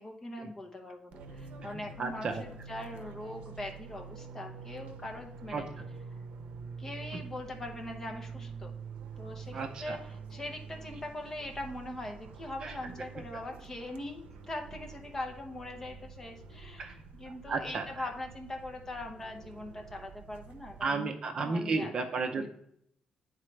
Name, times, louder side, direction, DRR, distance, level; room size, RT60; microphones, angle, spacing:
voice 1, 0.0-5.7 6.8-8.7 9.2-21.9 22.4-22.5, left 1 dB, 20° left, 2 dB, 0.8 m, -42 dB
Fixed-wing aircraft airplane, 1.1-20.8, right 5 dB, 85° right, 0.6 m, -47 dB
voice 2, 2.0-2.4 5.5-5.9 7.1-7.2 9.5-10.0 12.6-12.8 16.8-16.9 17.5-18.1 20.8-22.5, right 4 dB, 40° right, 6 dB, 0.5 m, -33 dB
9.7 x 4.0 x 3.2 m, 0.70 s
cardioid pair, 170°, 2 cm